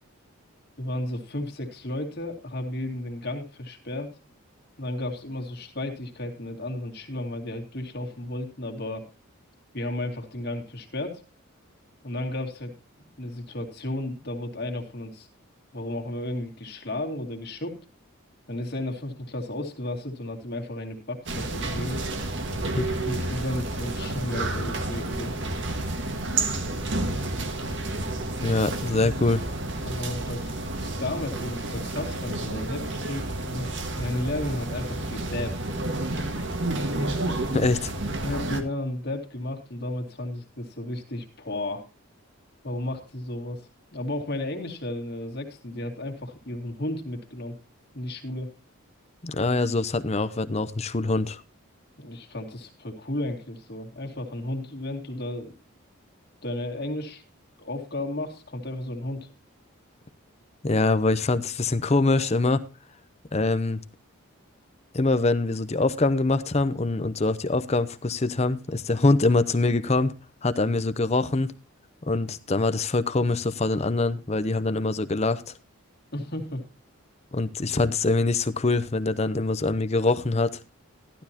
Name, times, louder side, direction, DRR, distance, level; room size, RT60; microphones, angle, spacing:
voice 1, 0.8-4.1 4.8-9.0 9.7-11.2 12.0-12.7 13.0-15.3 15.7-17.8 18.5-22.0 23.1-25.3 29.8-35.6 38.2-41.9 42.6-43.6 43.9-47.6 47.9-48.5 52.0-55.5 56.4-57.2 57.6-59.3 76.1-76.6, left 1 dB, 50° left, 2.3 m, -33 dB
sound 1, 21.3-38.6, right 2 dB, 55° right, 1.7 m, -30 dB
voice 2, 28.4-29.4 37.5-37.9 49.2-51.4 60.6-62.6 63.3-63.8 64.9-70.2 70.4-71.5 72.1-75.5 77.3-80.6, left 2 dB, 30° left, 0.7 m, -24 dB
14.0 x 12.0 x 2.9 m
head